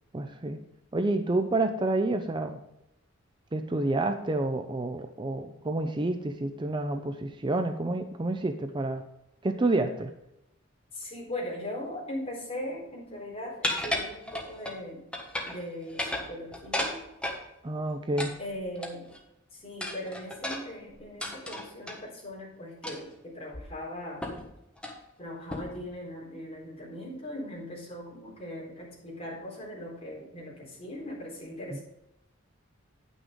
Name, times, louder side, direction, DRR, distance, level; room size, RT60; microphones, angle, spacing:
voice 1, 0.1-0.6 0.9-2.6 3.5-9.0 9.4-10.1 17.6-18.3 31.7-31.8, right 2 dB, 25° right, 7 dB, 0.5 m, -29 dB
voice 2, 10.9-15.0 15.4-17.0 18.4-19.1 19.5-24.3 25.2-31.8, left 1 dB, 30° left, -4 dB, 4.1 m, -39 dB
sound 1, 13.6-14.8 15.1-15.6 15.9-17.4 18.2-19.2 19.8-22.0 22.8-23.1 23.5-23.6 24.2-24.5 24.8-25.0 25.5-25.8, left 1 dB, 5° left, 1.3 m, -34 dB
9.7 x 6.2 x 5.2 m, 0.86 s
head